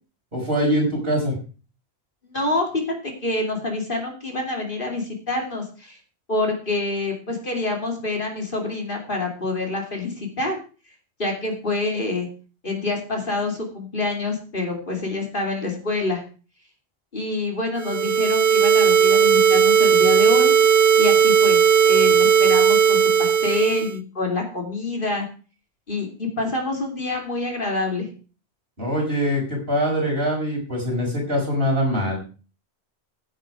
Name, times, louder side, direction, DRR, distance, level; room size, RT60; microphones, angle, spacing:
voice 1, 0.3-1.4 28.8-32.2, equal, 60° right, -1 dB, 5.7 m, -23 dB
voice 2, 2.2-6.0 6.3-10.6 11.2-12.3 12.6-16.2 17.1-20.5 21.0-21.6 21.8-25.3 25.9-28.1, left 2 dB, 55° left, 1 dB, 2.9 m, -27 dB
sound 1, 17.8-24.0, right 7 dB, 85° right, 1.1 m, -16 dB
15.5 x 8.3 x 4.8 m, 0.36 s
omnidirectional pair, 1.1 m